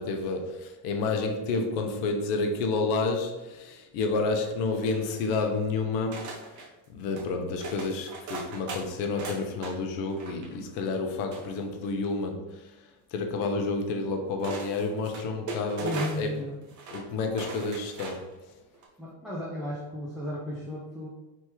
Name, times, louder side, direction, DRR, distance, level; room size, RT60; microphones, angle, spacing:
voice 1, 0.0-6.6 6.9-12.8 13.1-16.4 16.9-18.3, left 3 dB, 75° left, 4 dB, 1.0 m, -30 dB
sound 1, 4.8-5.5 6.1-6.7 7.1-7.3 7.6-9.7 10.1-10.5 11.3-12.1 13.5-13.6 14.4-16.4 16.7-17.0 17.3-18.3 18.7-18.8, right 3 dB, 35° right, 0.9 m, -39 dB
voice 2, 15.8-16.5 19.0-21.1, left 1 dB, ahead, -7 dB, 0.5 m, -34 dB
3.5 x 3.1 x 4.5 m, 1.1 s
cardioid pair, 140°, 49 cm